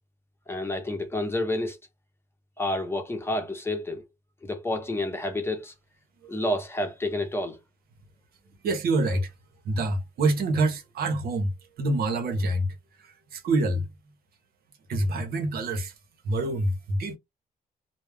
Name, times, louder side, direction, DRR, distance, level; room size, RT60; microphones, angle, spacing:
voice 1, 0.5-1.8 2.6-4.0 4.4-5.7 6.3-7.6, left 1 dB, 15° left, 0.8 m, -29 dB
voice 2, 8.6-9.3 9.6-11.5 11.8-12.7 13.0-13.9 14.9-15.9 16.2-17.2, right 2 dB, 75° right, 0.7 m, -26 dB
2.3 x 2.1 x 3.3 m
cardioid pair, 105°, 16 cm